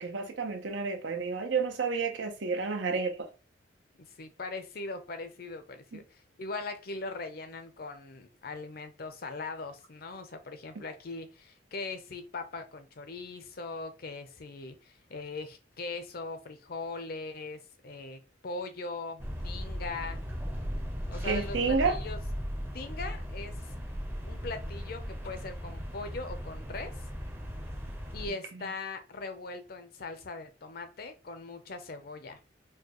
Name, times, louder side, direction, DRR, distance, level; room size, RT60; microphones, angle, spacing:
voice 1, 0.0-3.3 5.9-6.0 10.8-10.9 21.2-22.0, right 4 dB, 85° right, 0.7 m, -30 dB
voice 2, 4.2-20.2 21.1-22.2 22.7-23.7 24.3-26.9 28.1-32.4, left 3 dB, 55° left, 0.6 m, -40 dB
sound 1, 19.2-28.3, equal, 10° right, 0.6 m, -37 dB
4.5 x 2.2 x 3.0 m
head